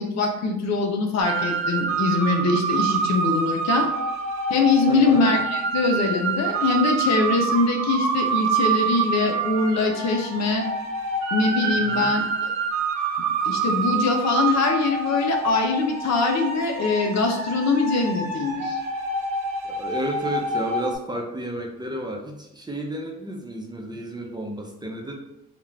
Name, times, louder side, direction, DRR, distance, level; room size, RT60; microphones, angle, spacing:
voice 1, 0.0-3.9 4.5-10.7 11.3-12.5 13.4-18.8, left 3 dB, 60° left, 3 dB, 0.7 m, -23 dB
sound 1, 1.2-20.9, right 4 dB, 70° right, 0.8 m, -26 dB
voice 2, 4.9-5.2 11.7-12.1 19.6-25.1, right 1 dB, 15° right, 0 dB, 0.6 m, -32 dB
3.7 x 2.4 x 3.3 m, 0.88 s
cardioid pair, 90°, 30 cm